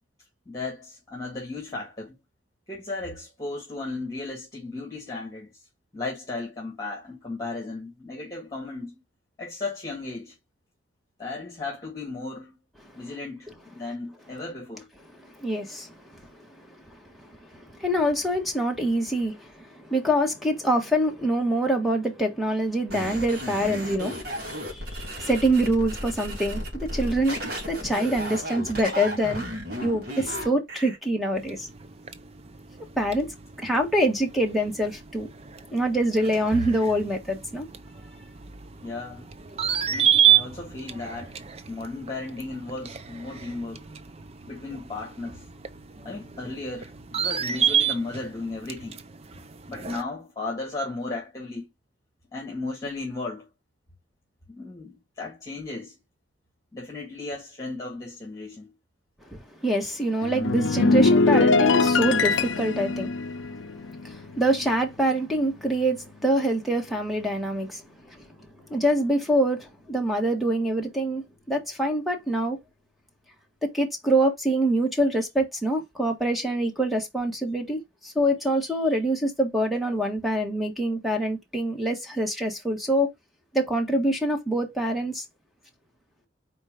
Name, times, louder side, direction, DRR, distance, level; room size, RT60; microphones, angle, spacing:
voice 1, 0.5-2.2 2.7-5.5 5.9-9.0 9.4-10.3 11.2-12.6 13.0-14.9 38.8-39.3 39.9-43.9 44.5-45.4 46.0-49.0 49.7-51.7 52.3-53.5 54.5-55.9 56.7-58.7, left 3 dB, 20° left, 2.0 m, -35 dB
voice 2, 15.4-15.9 17.2-24.2 24.7-27.4 27.7-29.4 29.8-31.7 33.0-33.3 33.6-35.3 35.7-37.7 59.3-63.1 64.0-67.8 68.1-68.2 68.7-72.6 73.6-83.1 83.5-85.2, right 1 dB, ahead, 1.5 m, -25 dB
sound 1, 22.9-31.0, equal, 55° right, 2.9 m, -34 dB
sound 2, 31.4-50.0, right 10 dB, 35° right, 0.5 m, -30 dB
sound 3, 60.2-64.8 65.1-65.4, left 3 dB, 75° left, 0.6 m, -22 dB
4.5 x 4.3 x 5.1 m
head